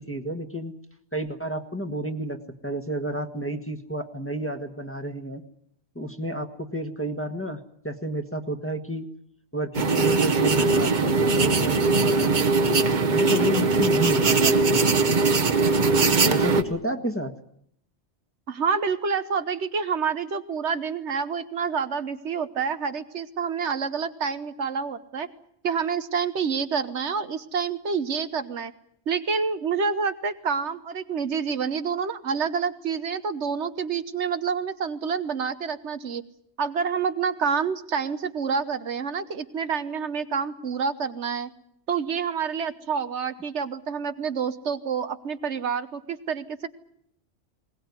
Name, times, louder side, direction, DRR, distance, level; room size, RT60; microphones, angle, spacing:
voice 1, 0.1-0.7 1.1-5.4 5.9-9.1 9.5-15.0 16.2-17.3, right 1 dB, 10° left, 3 dB, 1.6 m, -31 dB
sound 1, 9.7-16.6, right 3 dB, 45° right, 1.3 m, -21 dB
voice 2, 18.5-25.3 25.6-28.7 29.1-36.2 36.6-41.5 41.9-46.7, right 6 dB, 80° right, 11 dB, 1.4 m, -28 dB
21.0 x 19.5 x 9.6 m, 0.69 s
omnidirectional pair, 1.1 m